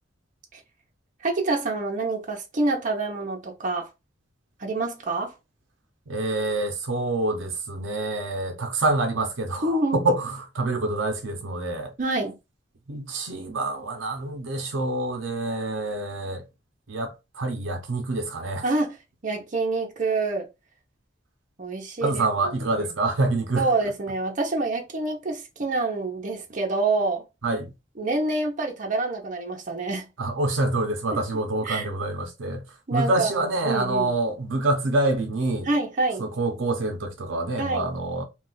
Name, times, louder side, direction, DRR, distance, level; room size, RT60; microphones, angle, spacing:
voice 1, 1.2-3.9 4.6-5.3 9.6-10.0 12.0-12.4 18.6-19.0 19.2-20.5 21.6-22.2 22.6-22.9 23.6-27.2 28.0-30.1 31.6-31.9 32.9-34.1 35.6-36.3 37.6-37.9, right 2 dB, 45° right, 0.7 m, -27 dB
voice 2, 6.1-11.9 12.9-16.4 16.9-18.6 22.0-23.7 27.4-27.7 30.2-32.6 32.9-35.7 36.2-38.2, right 2 dB, 80° right, 0.7 m, -26 dB
2.4 x 2.3 x 3.8 m
head